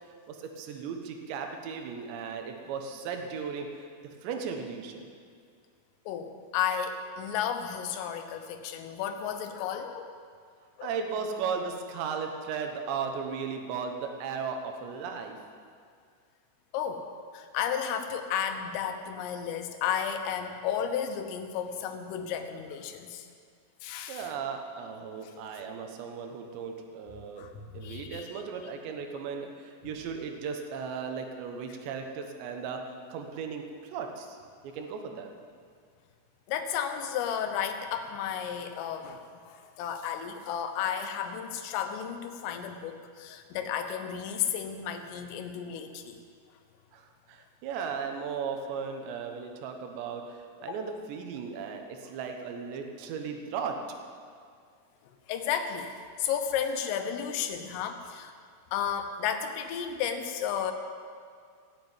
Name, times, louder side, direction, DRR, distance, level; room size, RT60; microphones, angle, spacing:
voice 1, 0.3-3.7 4.2-5.1 10.8-15.4 24.1-27.5 27.7-34.4 34.6-35.3 46.9-53.8, right 6 dB, 70° right, 4 dB, 3.2 m, -36 dB
voice 2, 6.1-10.2 10.8-10.9 16.7-17.1 17.3-23.3 23.8-24.3 27.4-28.4 36.5-46.2 50.6-50.8 55.3-58.3 58.7-60.7, left 8 dB, 80° left, 6 dB, 3.5 m, -33 dB
17.5 x 7.6 x 9.0 m, 2.1 s
omnidirectional pair, 5.9 m